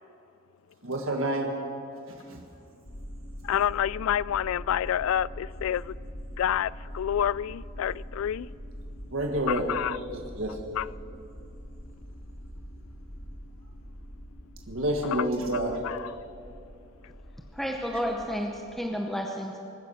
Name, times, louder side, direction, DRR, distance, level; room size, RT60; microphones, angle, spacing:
voice 1, 0.8-1.5 2.1-2.4 9.1-9.7 9.9-10.6 14.7-15.8, right 1 dB, 75° right, 1.6 m, -29 dB
sound 1, 2.8-18.7, equal, 65° left, 2.5 m, -43 dB
voice 2, 3.4-5.9 6.4-8.5 9.5-10.0 10.8-10.9 15.1-15.2 15.8-16.0, left 10 dB, 85° left, 0.3 m, -28 dB
voice 3, 17.5-19.6, equal, ahead, 0.8 m, -31 dB
21.5 x 9.8 x 6.4 m
head